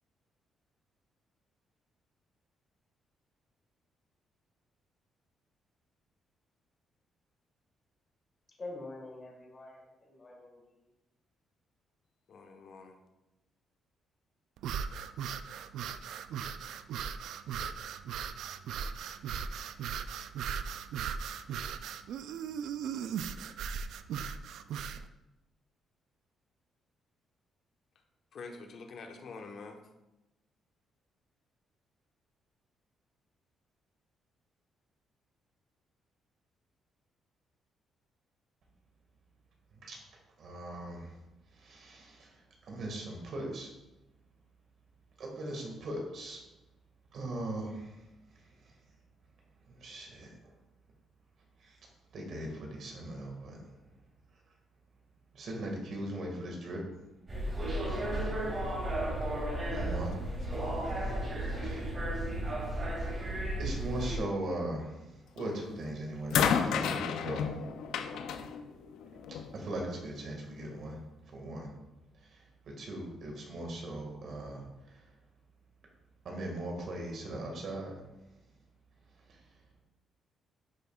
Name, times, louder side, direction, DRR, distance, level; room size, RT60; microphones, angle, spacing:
voice 1, 8.5-10.9, left 2 dB, 35° left, -2 dB, 2.6 m, -46 dB
voice 2, 12.3-13.0 28.3-29.8 60.8-62.6, left 4 dB, 60° left, 4 dB, 1.0 m, -49 dB
sound 1, 14.6-25.0, right 7 dB, 80° right, 0.3 m, -38 dB
voice 3, 40.4-41.2 41.5-43.7 45.2-46.4 47.1-48.8 49.6-50.6 51.6-51.8 52.1-53.8 54.3-54.4 55.3-56.8 57.5-59.0 59.6-61.3 61.5-62.0 63.6-67.8 68.1-68.4 69.5-71.8 72.1-75.2 76.2-78.3 79.1-79.8, right 1 dB, 65° right, 0 dB, 1.8 m, -40 dB
sound 2, 57.3-64.2, right 1 dB, 35° right, 2.4 m, -34 dB
sound 3, 65.4-65.7 66.3-69.6 70.6-70.7, left 7 dB, 85° left, 0.5 m, -31 dB
10.5 x 5.4 x 2.4 m, 0.98 s
cardioid pair, 90°, 0 cm